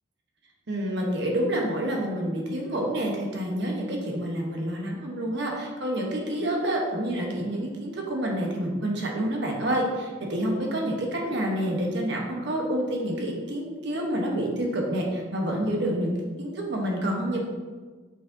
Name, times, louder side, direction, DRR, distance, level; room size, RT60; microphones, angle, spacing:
voice 1, 0.7-17.4, right 1 dB, 60° right, 0 dB, 1.1 m, -28 dB
6.4 x 5.9 x 2.7 m, 1.4 s
head